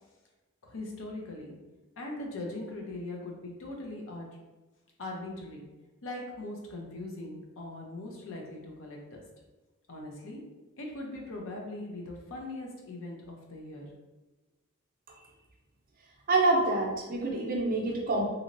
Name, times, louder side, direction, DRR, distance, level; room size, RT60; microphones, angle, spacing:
voice 1, 0.6-1.5 2.0-4.3 5.0-5.7 6.0-9.2 9.9-10.4 10.8-13.9, left 2 dB, 65° left, 0 dB, 0.7 m, -40 dB
voice 2, 16.3-18.2, right 2 dB, 40° right, -1 dB, 0.6 m, -26 dB
3.0 x 2.7 x 2.6 m, 1.1 s
head